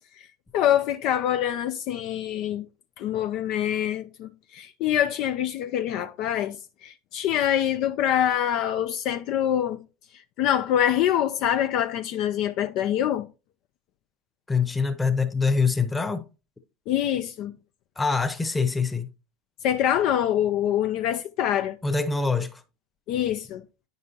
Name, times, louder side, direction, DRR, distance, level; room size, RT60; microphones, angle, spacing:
voice 1, 0.5-2.7 3.0-9.8 10.4-13.3 16.9-17.5 19.6-21.8 23.1-23.6, left 10 dB, 55° left, 0.5 m, -25 dB
voice 2, 14.5-16.2 18.0-19.1 21.8-22.6, left 4 dB, 15° left, 1.0 m, -24 dB
9.3 x 5.4 x 2.8 m
hypercardioid pair, 80°, 0 cm